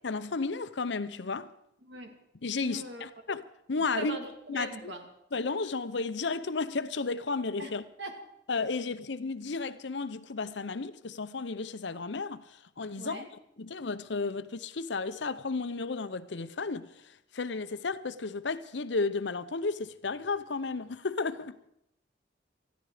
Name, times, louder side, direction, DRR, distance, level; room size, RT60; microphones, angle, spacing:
voice 1, 0.0-1.5 2.4-3.4 3.7-4.2 4.5-4.7 5.3-7.8 8.5-21.6, left 4 dB, 70° left, 0.8 m, -33 dB
voice 2, 1.8-2.2 2.6-3.1 3.9-5.1 7.6-8.2 13.0-13.3, right 1 dB, 70° right, 2.7 m, -40 dB
20.0 x 14.0 x 5.0 m
head